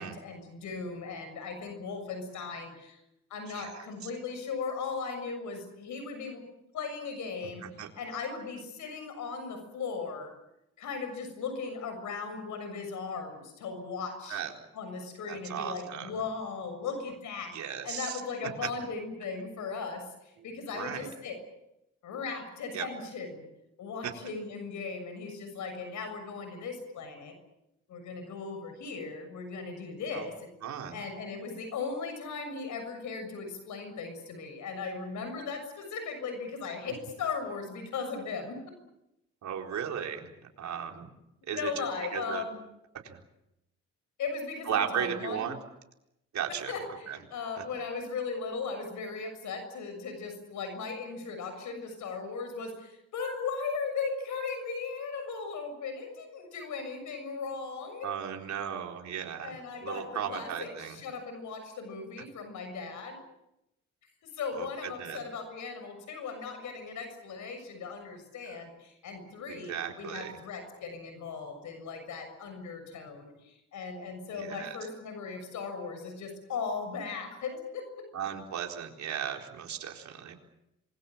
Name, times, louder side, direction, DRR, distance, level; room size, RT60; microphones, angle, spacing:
voice 1, 0.0-3.0 3.3-6.4 6.7-7.6 7.9-10.3 10.8-14.4 14.7-21.4 22.0-23.4 23.8-27.3 27.9-30.5 30.9-38.6 41.5-42.6 44.2-45.4 46.7-58.1 59.4-63.2 64.3-77.9, left 5 dB, 75° left, 7 dB, 6.7 m, -37 dB
voice 2, 3.5-3.8 7.6-7.9 14.3-14.5 15.3-16.1 17.5-18.2 20.7-21.1 22.7-22.9 24.0-24.1 30.1-30.3 30.6-31.0 39.4-40.3 40.6-41.1 41.4-41.8 42.1-42.4 43.0-43.2 44.7-45.6 46.3-46.8 47.1-47.2 58.0-59.6 59.8-61.0 64.6-64.7 65.0-65.2 68.5-68.6 69.5-70.3 74.4-74.8 78.1-80.3, right 8 dB, 65° right, 2 dB, 4.2 m, -35 dB
26.5 x 22.0 x 7.5 m, 0.87 s
cardioid pair, 90°, 30 cm